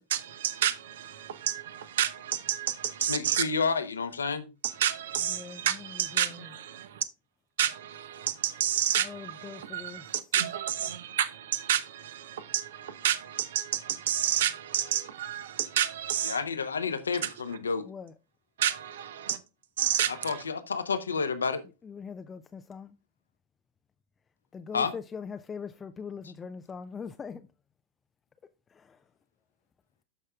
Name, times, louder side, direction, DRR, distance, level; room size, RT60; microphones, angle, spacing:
voice 1, 0.1-3.4 4.6-7.0 7.6-16.4 17.2-17.6 18.6-19.4 19.8-20.4, right 10 dB, 60° right, 0.8 m, -30 dB
voice 2, 3.1-4.5 16.2-17.9 20.1-21.6 24.7-24.9, left 5 dB, 75° left, 0.8 m, -30 dB
voice 3, 5.2-6.5 9.0-10.1 17.9-18.1 21.8-23.0 24.5-27.4 28.7-29.0, left 6 dB, 20° left, 0.4 m, -42 dB
12.5 x 5.5 x 2.3 m
figure-of-eight pair, 90°, 0 cm